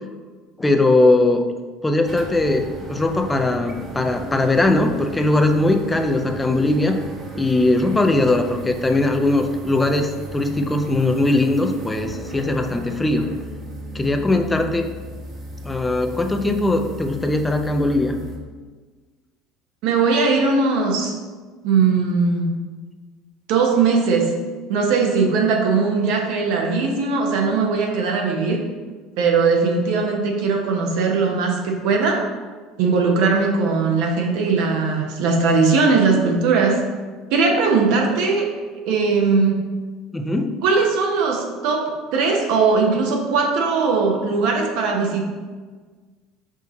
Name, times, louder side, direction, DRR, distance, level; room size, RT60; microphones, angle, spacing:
voice 1, 0.6-1.5 1.8-7.0 7.4-13.3 13.9-14.9 15.6-18.2 40.1-40.6, left 2 dB, 15° left, 6 dB, 0.5 m, -20 dB
sound 1, 2.0-18.4, right 2 dB, 40° right, 1.0 m, -35 dB
voice 2, 19.8-21.1 21.6-22.5 23.5-24.2 24.7-28.6 29.2-32.2 32.8-36.8 37.3-38.5 38.9-39.6 40.6-41.8 42.1-45.3, right 4 dB, 65° right, 1 dB, 0.8 m, -19 dB
5.1 x 2.7 x 3.8 m, 1.4 s
hypercardioid pair, 70°, 0 cm